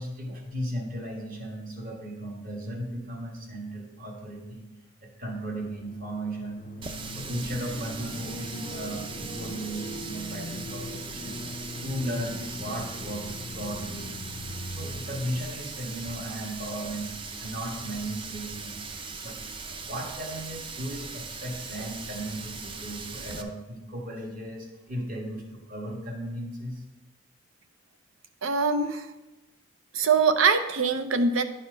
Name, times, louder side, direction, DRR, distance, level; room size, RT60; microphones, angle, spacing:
voice 1, 0.0-4.7 5.0-6.7 7.1-11.4 11.8-14.1 14.7-18.8 19.2-26.8, right 1 dB, 45° right, 0 dB, 1.5 m, -36 dB
sound 1, 5.6-15.6, left 1 dB, 35° left, 0.4 m, -40 dB
Water tap faucet, 6.8-23.4, right 4 dB, 25° right, 0.4 m, -39 dB
voice 2, 28.4-29.1 29.9-31.4, right 5 dB, 85° right, 9 dB, 0.7 m, -23 dB
10.5 x 4.3 x 5.1 m, 1.0 s
head